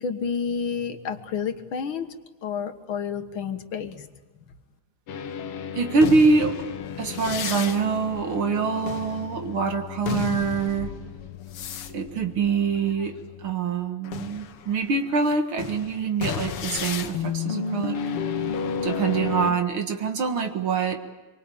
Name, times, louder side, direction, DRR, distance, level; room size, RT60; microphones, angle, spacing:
voice 1, 0.0-2.1 2.4-4.1, left 6 dB, 65° left, 8 dB, 2.1 m, -30 dB
sound 1, 5.1-13.6 14.0-19.5, left 7 dB, 90° left, 2.1 m, -32 dB
voice 2, 5.7-6.7 7.0-11.0 11.9-18.0 18.8-21.0, right 4 dB, 70° right, 5 dB, 2.5 m, -24 dB
25.5 x 24.5 x 8.6 m, 1.2 s
omnidirectional pair, 2.4 m